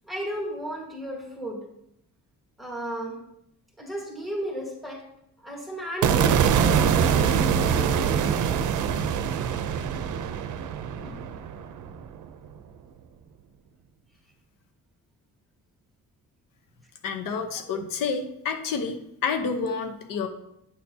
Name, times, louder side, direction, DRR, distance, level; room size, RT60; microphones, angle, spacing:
voice 1, 0.0-1.6 2.6-3.2 3.8-5.0 5.4-8.5 11.0-11.3, equal, ahead, 0 dB, 1.4 m, -34 dB
sound 1, 6.0-12.3, right 7 dB, 65° right, 0.6 m, -24 dB
voice 2, 17.0-20.3, left 5 dB, 80° left, 6 dB, 1.0 m, -29 dB
9.1 x 6.8 x 2.8 m, 0.78 s
cardioid pair, 175°, 32 cm